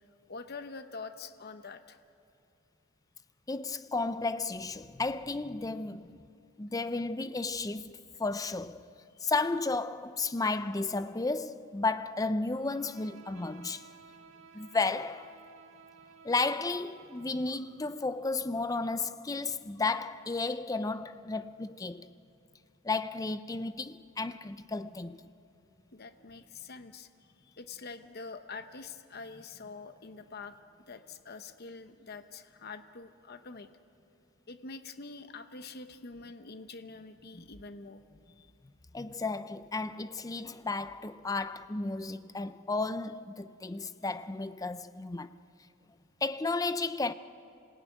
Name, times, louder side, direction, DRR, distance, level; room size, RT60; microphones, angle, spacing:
voice 1, 0.3-2.0 14.5-14.6 25.9-27.1 27.4-30.5 30.9-33.7 34.5-38.0 38.3-38.5, left 4 dB, 50° left, 0.9 m, -45 dB
voice 2, 3.5-6.2 6.6-8.8 9.2-13.8 14.5-15.3 16.2-22.1 22.8-25.2 37.3-37.5 38.9-45.3 46.2-47.1, left 3 dB, 15° left, 0.5 m, -33 dB
Bowed string instrument, 12.5-17.7, right 5 dB, 65° right, 1.8 m, -55 dB
26.0 x 17.0 x 9.3 m
head